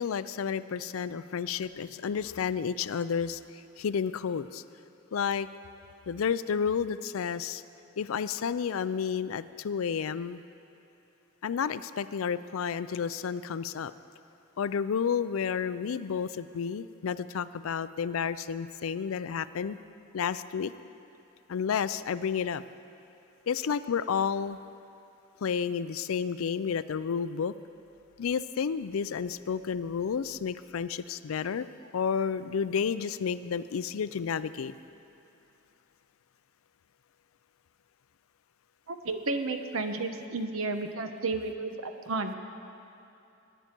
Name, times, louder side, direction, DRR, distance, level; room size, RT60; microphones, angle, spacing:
voice 1, 0.0-3.4 3.8-4.6 5.1-5.5 6.1-7.6 8.0-10.4 11.4-13.9 14.6-19.8 20.1-20.7 21.5-22.6 23.5-24.6 25.4-27.5 28.2-31.7 31.9-34.7, left 6 dB, 85° left, 14 dB, 0.4 m, -31 dB
voice 2, 38.9-42.3, right 3 dB, 90° right, 7 dB, 1.0 m, -32 dB
21.5 x 10.0 x 4.5 m, 2.7 s
head